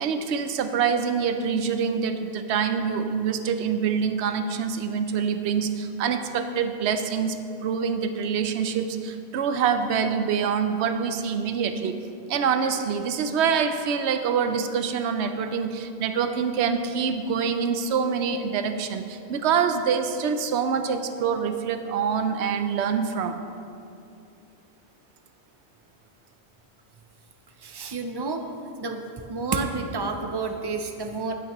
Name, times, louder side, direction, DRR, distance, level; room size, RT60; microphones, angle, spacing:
voice 1, 0.0-7.4 7.6-12.0 12.3-23.4, right 6 dB, 80° right, 8 dB, 0.9 m, -25 dB
voice 2, 27.6-28.4 28.8-29.0 29.3-31.3, right 4 dB, 40° right, 5 dB, 0.4 m, -29 dB
14.5 x 6.6 x 3.0 m, 2.6 s
omnidirectional pair, 1.1 m